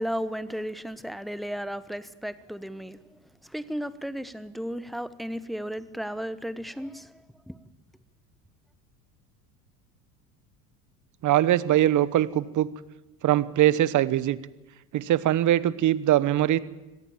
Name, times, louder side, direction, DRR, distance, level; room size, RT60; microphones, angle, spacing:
voice 1, 0.0-3.0 3.4-7.6, equal, ahead, 1.2 m, -34 dB
voice 2, 11.2-12.7 13.2-14.4 14.9-16.6, right 13 dB, 40° right, 1.2 m, -22 dB
25.5 x 18.0 x 7.5 m
hypercardioid pair, 75°, 46 cm